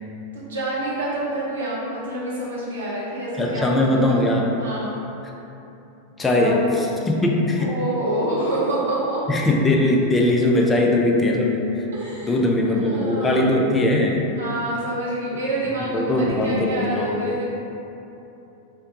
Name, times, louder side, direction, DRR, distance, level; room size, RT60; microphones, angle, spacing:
voice 1, 0.3-4.2 4.5-5.0 6.2-6.6 7.6-9.2 11.9-13.5 14.3-17.5, right 1 dB, 65° right, -6 dB, 0.8 m, -27 dB
voice 2, 3.4-4.5 6.2-6.6 7.1-7.7 9.3-11.8 12.2-14.2 15.9-17.2, left 1 dB, 15° left, 0 dB, 0.4 m, -20 dB
3.2 x 2.6 x 2.9 m, 2.9 s
figure-of-eight pair, 90°, 0 cm